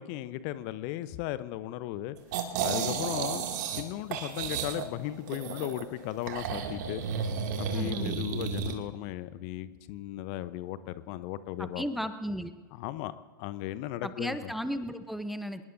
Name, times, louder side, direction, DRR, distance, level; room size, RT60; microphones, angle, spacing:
voice 1, 0.0-2.2 2.6-3.4 3.8-7.0 7.6-11.8 12.8-13.1 13.4-14.5, left 14 dB, 45° left, 14 dB, 0.8 m, -36 dB
sound 1, 2.3-3.8 4.1-5.8 6.3-8.7, right 6 dB, 55° right, 2.3 m, -32 dB
voice 2, 7.7-8.2 11.6-12.5 14.0-15.6, equal, ahead, 10 dB, 0.7 m, -35 dB
26.0 x 20.5 x 2.7 m, 1.4 s
figure-of-eight pair, 100°, 12 cm